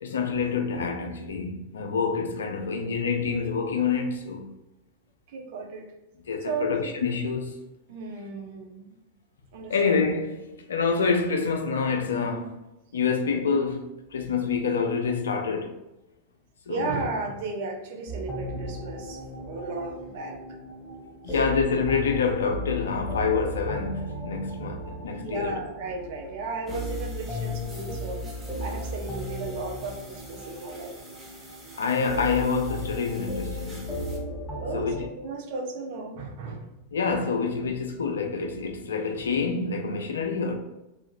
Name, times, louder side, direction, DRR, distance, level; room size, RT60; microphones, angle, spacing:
voice 1, 0.0-4.5 6.3-7.6 9.7-12.6 12.9-15.8 16.7-17.0 21.2-25.6 31.8-34.2 34.7-35.0 36.9-40.5, left 5 dB, 75° left, 0.4 m, -27 dB
voice 2, 5.3-5.9 6.4-6.9 7.9-8.9 9.5-10.0 16.7-20.6 21.3-21.4 25.2-28.2 28.6-31.0 34.6-36.7, right 3 dB, 55° right, 0.5 m, -35 dB
sound 1, 18.1-35.0, left 1 dB, 5° left, 0.8 m, -35 dB
sound 2, 26.7-34.2, right 2 dB, 20° right, 0.9 m, -49 dB
3.1 x 2.3 x 2.5 m
figure-of-eight pair, 90°, 0 cm